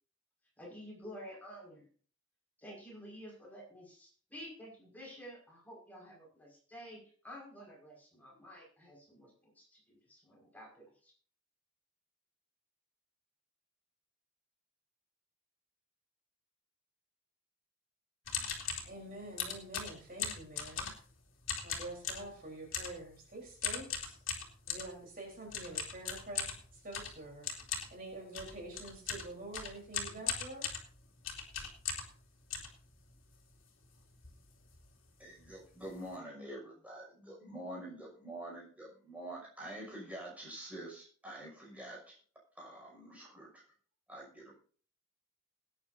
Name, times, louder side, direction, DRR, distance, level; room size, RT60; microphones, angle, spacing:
voice 1, 0.6-1.9 2.6-11.1, equal, 10° left, -3 dB, 5.5 m, -51 dB
sound 1, 18.3-18.9 19.4-21.1 21.4-22.3 22.7-23.0 23.6-24.9 25.5-32.2 32.5-33.4 33.8-33.9 34.1-34.4 34.7-34.9 35.5-35.6 35.8-36.1, left 7 dB, 75° left, 2.8 m, -39 dB
voice 2, 18.8-20.9 21.6-24.2 24.7-27.5 27.9-30.7, right 2 dB, 45° right, -1 dB, 4.1 m, -47 dB
voice 3, 35.2-42.2 42.6-43.6 44.1-44.6, right 1 dB, 5° right, -2 dB, 6.1 m, -46 dB
20.5 x 9.8 x 2.7 m, 0.44 s
head